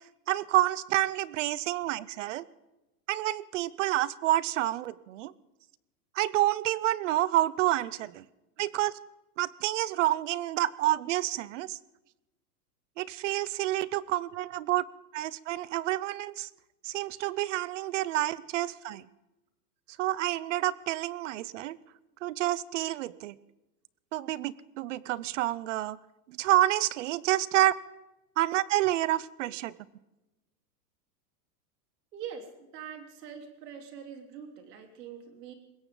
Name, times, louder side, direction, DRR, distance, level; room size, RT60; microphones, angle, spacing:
voice 1, 0.3-2.4 3.1-5.3 6.1-8.2 8.6-8.9 9.4-11.8 13.0-14.9 15.1-16.5 16.8-19.0 20.0-21.8 22.2-23.4 24.1-26.0 26.3-27.7 28.4-29.7, right 15 dB, 50° right, 21 dB, 0.6 m, -28 dB
voice 2, 32.1-35.5, right 8 dB, 75° right, 4 dB, 3.7 m, -44 dB
20.5 x 17.0 x 3.9 m, 0.99 s
supercardioid pair, 170°, 48 cm